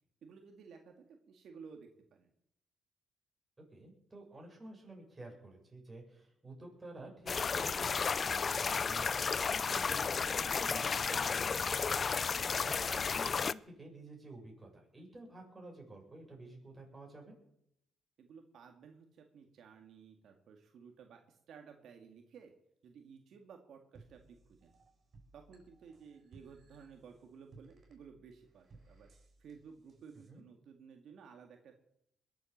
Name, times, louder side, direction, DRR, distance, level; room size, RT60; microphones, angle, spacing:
voice 1, 0.2-2.3 18.2-22.5 22.8-24.7 25.3-29.1 29.4-31.7, right 6 dB, 70° right, 4 dB, 2.0 m, -55 dB
voice 2, 3.7-17.3 30.3-30.4, right 2 dB, 20° right, 0 dB, 7.2 m, -51 dB
sound 1, 7.3-13.5, left 5 dB, 40° left, 0.5 m, -33 dB
sound 2, 23.9-30.3, right 3 dB, 45° right, 7.2 m, -62 dB
21.5 x 8.2 x 7.3 m, 0.75 s
cardioid pair, 90°, 0 cm